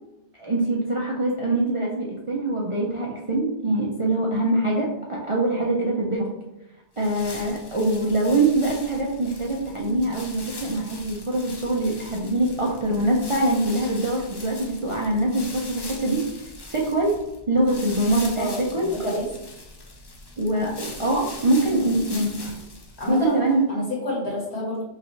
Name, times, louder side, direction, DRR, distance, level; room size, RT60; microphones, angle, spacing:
voice 1, 0.4-6.2 7.0-16.2 16.7-17.1 17.5-18.9 20.4-22.5 23.1-23.6, right 1 dB, 35° right, -3 dB, 0.5 m, -23 dB
sound 1, 6.9-23.5, left 2 dB, 35° left, 0.4 m, -41 dB
voice 2, 18.4-19.3 21.7-21.8 23.0-23.4 23.7-24.8, left 1 dB, 65° left, -4 dB, 1.9 m, -29 dB
5.5 x 2.5 x 3.1 m, 0.92 s
omnidirectional pair, 1.2 m